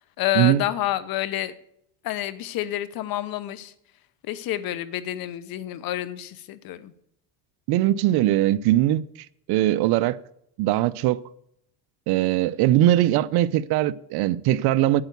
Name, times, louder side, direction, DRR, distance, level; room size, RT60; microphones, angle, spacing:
voice 1, 0.2-1.5 2.0-3.7 4.2-6.9, left 13 dB, 50° left, 1.0 m, -28 dB
voice 2, 7.7-9.0 9.5-10.2 10.6-11.2 12.1-15.0, right 14 dB, 55° right, 0.7 m, -20 dB
8.8 x 8.1 x 8.0 m
cardioid pair, 130°, 46 cm